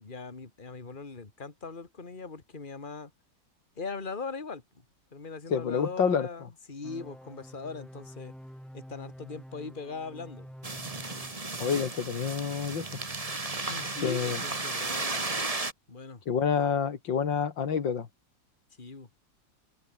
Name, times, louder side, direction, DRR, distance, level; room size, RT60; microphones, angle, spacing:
voice 1, 0.0-3.1 3.8-4.6 5.1-8.3 8.7-10.5 13.5-15.3 15.9-16.2 18.8-19.1, left 4 dB, 25° left, 2.5 m, -40 dB
voice 2, 5.5-6.3 11.6-12.9 14.0-14.4 16.3-18.1, left 6 dB, 80° left, 2.6 m, -28 dB
sound 1, 6.8-11.9, equal, ahead, 5.6 m, -48 dB
sound 2, 10.6-15.7, right 3 dB, 20° right, 1.8 m, -34 dB
open air
omnidirectional pair, 2.0 m